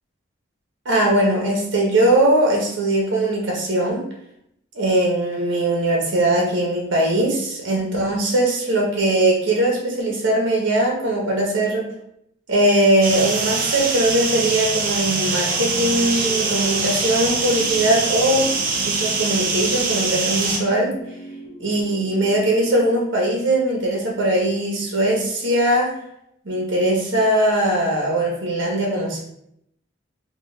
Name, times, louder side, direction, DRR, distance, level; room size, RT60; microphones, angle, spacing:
voice 1, 0.8-4.0 4.7-11.9 12.5-20.9 21.6-25.9 26.4-29.2, right 1 dB, 65° right, -2 dB, 0.8 m, -20 dB
sound 1, 13.0-20.6, right 4 dB, 45° right, 0.4 m, -23 dB
sound 2, 15.0-22.9, left 2 dB, 45° left, 0.4 m, -38 dB
3.0 x 2.2 x 3.1 m, 0.74 s
head